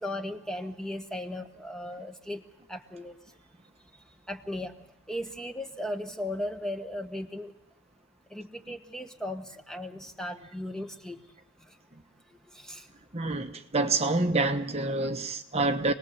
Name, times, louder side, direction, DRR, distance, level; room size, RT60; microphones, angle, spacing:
voice 1, 0.0-2.4 2.7-3.2 4.3-4.7 5.1-7.5 8.3-11.2 12.5-12.9, left 1 dB, 5° left, 1.2 m, -36 dB
voice 2, 13.1-15.9, right 2 dB, 30° right, 1.1 m, -27 dB
27.5 x 19.5 x 7.2 m
head